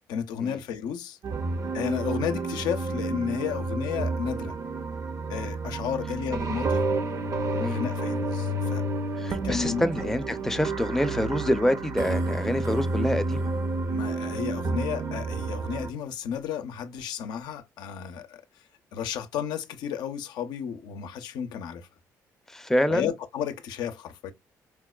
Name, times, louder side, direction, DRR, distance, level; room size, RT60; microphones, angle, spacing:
voice 1, 0.1-1.2 1.7-4.6 5.3-6.9 7.5-8.8 9.4-10.1 13.9-18.4 18.9-21.9 22.9-24.3, left 8 dB, 80° left, 0.4 m, -32 dB
sound 1, 1.2-15.9, right 2 dB, 50° right, 0.6 m, -30 dB
voice 2, 9.2-13.5 22.5-23.1, left 1 dB, 5° left, 0.5 m, -26 dB
4.4 x 2.1 x 2.2 m
supercardioid pair, 75°, 7 cm